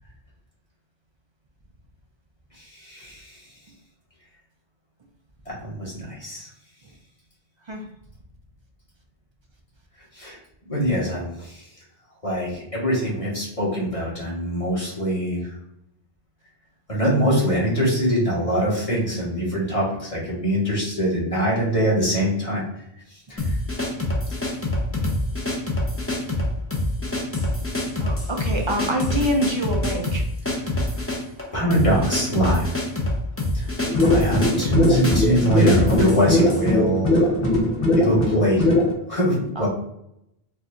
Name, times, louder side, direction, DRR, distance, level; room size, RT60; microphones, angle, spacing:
voice 1, 2.6-3.4 5.5-6.5 10.1-10.4 10.7-11.6 12.2-15.5 16.9-22.6 23.3-23.5 31.5-32.7 33.5-33.7 34.1-37.3 37.9-38.7 39.1-39.7, equal, 35° left, -5 dB, 1.4 m, -23 dB
sound 1, 23.4-36.7, left 1 dB, 15° left, 0.6 m, -26 dB
voice 2, 28.0-30.2 31.1-31.2 39.6-39.7, equal, 45° right, 2 dB, 0.3 m, -26 dB
sound 2, 33.9-38.9, left 1 dB, 65° left, 1.1 m, -20 dB
4.5 x 2.4 x 2.5 m, 0.80 s
omnidirectional pair, 1.0 m